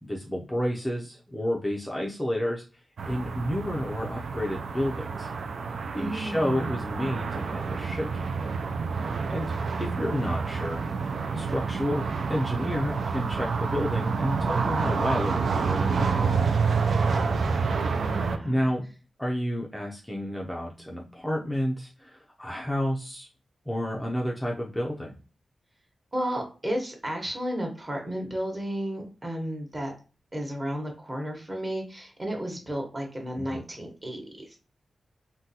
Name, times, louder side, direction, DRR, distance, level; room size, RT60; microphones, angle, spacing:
voice 1, 0.0-2.6 3.0-5.3 5.9-8.3 9.0-9.5 9.8-10.9 11.3-16.3 18.4-18.8 19.2-23.3 23.7-25.1 33.5-33.6, equal, 5° left, -2 dB, 0.5 m, -30 dB
sound 1, 3.0-18.4, right 5 dB, 65° right, 0.3 m, -28 dB
voice 2, 5.9-6.8 17.4-18.7 26.1-29.9 30.3-34.6, equal, 25° right, 1 dB, 1.1 m, -33 dB
3.8 x 2.2 x 2.7 m, 0.34 s
wide cardioid pair, 150°, 0 cm